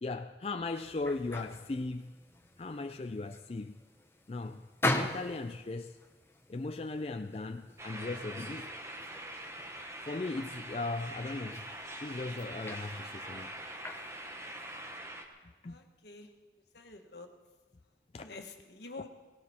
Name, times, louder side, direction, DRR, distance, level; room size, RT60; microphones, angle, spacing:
voice 1, 0.0-2.1 2.6-3.8 4.3-4.6 4.9-6.0 6.5-8.7 10.1-11.7 12.0-13.5 15.6-15.8 18.1-18.4, left 3 dB, 35° left, 7 dB, 0.4 m, -37 dB
sound 1, 0.7-15.0, left 1 dB, 15° left, 0.9 m, -42 dB
sound 2, 7.8-15.2, right 1 dB, 15° right, 1.2 m, -44 dB
voice 2, 15.6-16.3 16.7-17.3 18.2-19.1, left 3 dB, 70° left, 4 dB, 1.5 m, -48 dB
18.0 x 17.5 x 4.3 m, 1.3 s
head